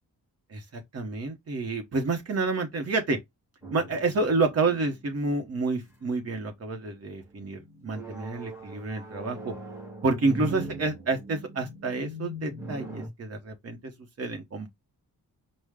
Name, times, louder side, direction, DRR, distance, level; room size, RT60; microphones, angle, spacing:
voice 1, 0.5-3.2 3.7-9.5 10.0-13.9 14.2-14.7, right 3 dB, 40° right, 1.0 m, -29 dB
sound 1, 3.6-5.4 6.0-6.4 7.2-13.1, right 1 dB, 5° right, 1.5 m, -40 dB
5.0 x 2.1 x 3.5 m
wide cardioid pair, 155°, 37 cm